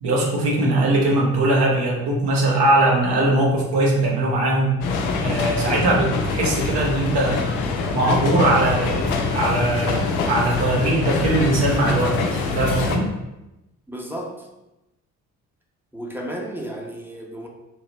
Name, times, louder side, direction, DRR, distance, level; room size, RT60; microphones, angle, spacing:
voice 1, 0.0-4.8 5.2-7.5 7.9-12.2 12.5-13.1, right 1 dB, 60° right, -3 dB, 1.3 m, -20 dB
sound 1, 4.8-13.0, left 4 dB, 80° left, 0.6 m, -24 dB
voice 2, 13.9-14.5 15.9-17.5, right 1 dB, 5° right, 0 dB, 0.9 m, -33 dB
3.6 x 2.9 x 4.3 m, 0.97 s
hypercardioid pair, 40°, 44 cm